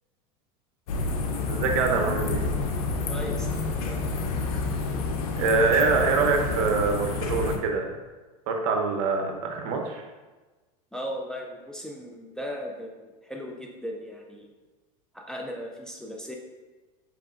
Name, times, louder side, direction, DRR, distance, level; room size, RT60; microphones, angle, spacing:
sound 1, 0.9-7.6, left 3 dB, 80° left, 0.6 m, -29 dB
voice 1, 1.5-2.5 5.4-8.0 8.5-10.0, right 4 dB, 65° right, 3 dB, 0.7 m, -25 dB
voice 2, 3.1-4.0 10.9-14.5 15.1-16.4, equal, 5° left, 0 dB, 0.4 m, -37 dB
4.7 x 3.3 x 2.4 m, 1.2 s
supercardioid pair, 120°, 18 cm